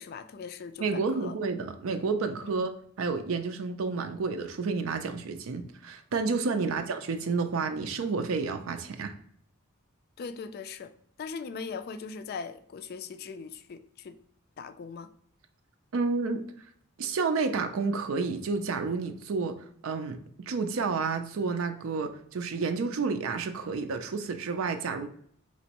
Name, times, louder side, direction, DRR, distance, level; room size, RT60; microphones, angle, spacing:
voice 1, 0.0-1.4 2.4-2.5 6.6-6.8 10.2-10.9 11.2-14.2 14.6-15.1, left 5 dB, 50° left, 0.3 m, -40 dB
voice 2, 0.8-2.7 3.0-9.1 15.9-16.4 17.0-19.5 19.8-20.2 20.5-25.1, right 4 dB, 75° right, 0.4 m, -30 dB
4.3 x 3.0 x 2.9 m
head